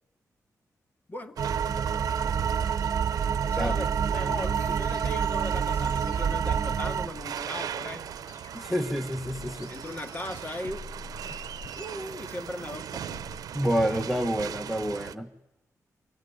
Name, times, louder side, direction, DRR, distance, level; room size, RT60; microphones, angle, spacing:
sound 1, 1.4-7.1, right 7 dB, 55° right, 1.1 m, -27 dB
sound 2, 1.4-15.1, right 9 dB, 90° right, 0.9 m, -39 dB
voice 1, 3.5-8.0 9.7-10.8 11.7-13.1, left 1 dB, 30° left, 7 dB, 2.2 m, -38 dB
sound 3, 3.7-13.5, left 3 dB, 85° left, 5.6 m, -49 dB
voice 2, 8.5-9.7 13.5-15.3, equal, ahead, 8 dB, 1.5 m, -28 dB
28.0 x 24.5 x 8.2 m, 0.87 s
wide cardioid pair, 120°, 6 cm